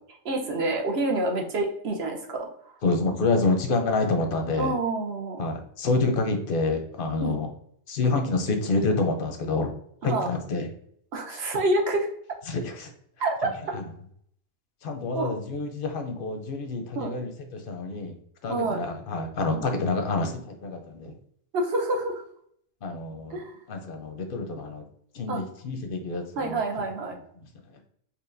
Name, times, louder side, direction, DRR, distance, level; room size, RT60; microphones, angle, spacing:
voice 1, 0.2-2.5 4.6-5.5 7.2-7.4 10.0-10.3 11.1-12.1 13.2-13.5 15.1-15.3 17.0-17.2 18.5-18.8 19.5-19.7 21.5-22.2 23.3-23.5 25.3-25.4 26.4-27.2, right 2 dB, 60° right, 2 dB, 1.0 m, -27 dB
voice 2, 2.8-4.7 5.4-7.5 7.9-9.7 10.0-10.7 12.5-12.9 13.7-13.8 14.8-18.2 18.4-21.1 22.8-23.4 23.7-24.9 25.1-26.6, left 3 dB, 55° left, 5 dB, 0.7 m, -27 dB
4.7 x 2.8 x 2.5 m, 0.67 s
omnidirectional pair, 1.3 m